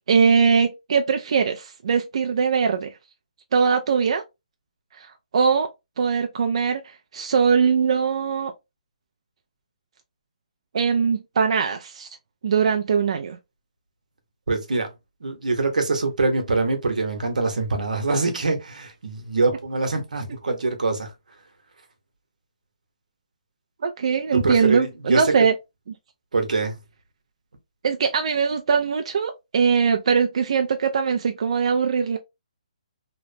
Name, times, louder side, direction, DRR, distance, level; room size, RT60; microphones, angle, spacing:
voice 1, 0.1-2.9 3.5-4.2 5.0-5.1 5.3-5.7 6.0-6.8 7.1-8.5 10.7-12.1 12.4-13.4 23.8-25.5 27.8-32.2, right 6 dB, 50° right, 0.3 m, -21 dB
voice 2, 14.5-14.9 15.2-21.1 24.3-25.3 26.3-26.8, right 3 dB, 90° right, 0.9 m, -24 dB
2.9 x 2.0 x 2.5 m
hypercardioid pair, 165°, 4 cm